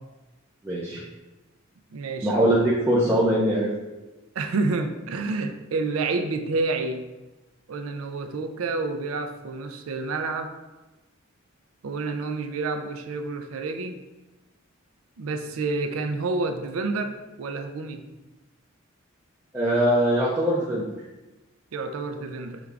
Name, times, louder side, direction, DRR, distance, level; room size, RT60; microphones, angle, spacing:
voice 1, 0.6-1.0 2.2-3.7 19.5-20.9, right 1 dB, 10° right, -7 dB, 0.5 m, -22 dB
voice 2, 1.9-2.3 4.4-7.0 7.7-10.5 11.8-14.0 15.2-18.0 21.7-22.6, right 3 dB, 80° right, 6 dB, 0.4 m, -29 dB
5.0 x 2.4 x 3.3 m, 1.1 s
head